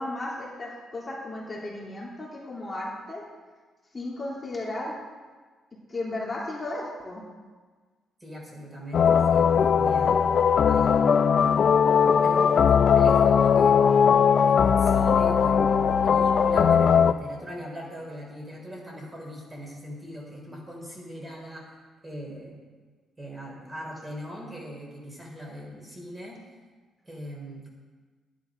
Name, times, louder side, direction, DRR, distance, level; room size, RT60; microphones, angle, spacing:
voice 1, 0.0-3.2 3.9-4.9 5.9-7.2, left 2 dB, 25° left, -5 dB, 2.8 m, -34 dB
voice 2, 8.2-10.2 10.6-11.6 12.2-21.8 22.0-22.6 23.2-26.4 27.0-27.7, equal, 20° right, -2 dB, 4.1 m, -40 dB
sound 1, 8.9-17.1, left 7 dB, 55° left, 0.4 m, -19 dB
10.5 x 10.0 x 5.2 m, 1.4 s
cardioid pair, 90°, 0 cm